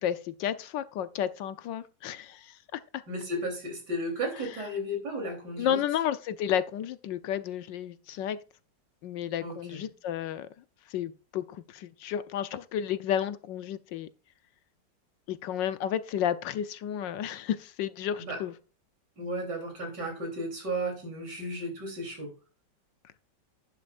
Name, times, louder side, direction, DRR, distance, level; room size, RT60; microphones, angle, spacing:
voice 1, 0.0-2.8 5.6-8.4 9.0-10.5 10.9-14.1 15.3-18.5, left 10 dB, 75° left, 1.4 m, -32 dB
voice 2, 3.1-5.8 9.4-9.9 18.2-18.4 19.2-22.3, right 1 dB, 65° right, 4.1 m, -34 dB
11.0 x 11.0 x 2.5 m
omnidirectional pair, 2.0 m